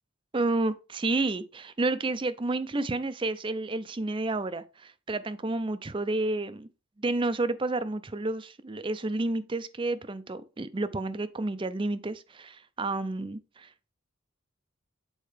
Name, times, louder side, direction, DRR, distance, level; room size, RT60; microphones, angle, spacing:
voice 1, 0.3-6.7 7.0-13.7, right 2 dB, 25° right, 0.4 m, -30 dB
8.5 x 4.4 x 3.2 m
head